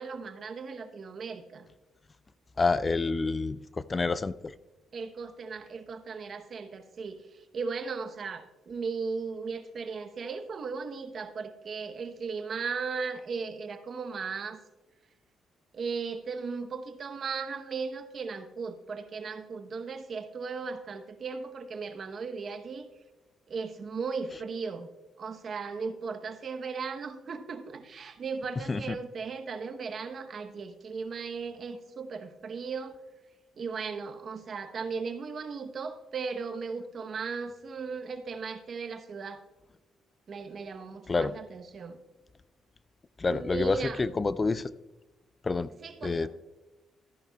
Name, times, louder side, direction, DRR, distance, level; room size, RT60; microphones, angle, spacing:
voice 1, 0.0-1.7 4.9-7.2 7.5-14.6 15.7-22.9 23.5-24.9 25.2-33.0 33.6-39.4 40.3-42.0 43.3-44.0 45.8-46.3, right 5 dB, 50° right, 8 dB, 0.9 m, -37 dB
voice 2, 2.6-3.6 3.9-4.5 28.7-28.8 41.1-41.3 43.2-44.7 45.4-45.7 46.0-46.3, left 3 dB, 30° left, 17 dB, 0.3 m, -28 dB
13.5 x 10.5 x 2.3 m, 1.1 s
cardioid pair, 90°, 0 cm